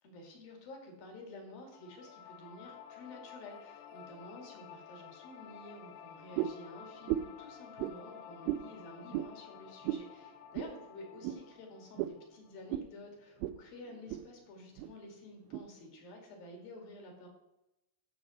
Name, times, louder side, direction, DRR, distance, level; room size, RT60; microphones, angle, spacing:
voice 1, 0.0-17.3, left 2 dB, 60° left, 2 dB, 3.8 m, -51 dB
sound 1, 1.7-12.8, left 8 dB, 85° left, 2.8 m, -53 dB
sound 2, 6.3-6.6 7.1-7.4 7.8-8.0 8.4-8.7 9.1-9.3 9.8-10.1 10.5-10.7 11.2-11.4 12.0-12.2 12.7-12.9 13.4-13.6 13.9-14.2 14.8-14.9 15.5-15.6, right 13 dB, 85° right, 2.2 m, -34 dB
15.0 x 6.6 x 4.2 m, 0.89 s
omnidirectional pair, 4.8 m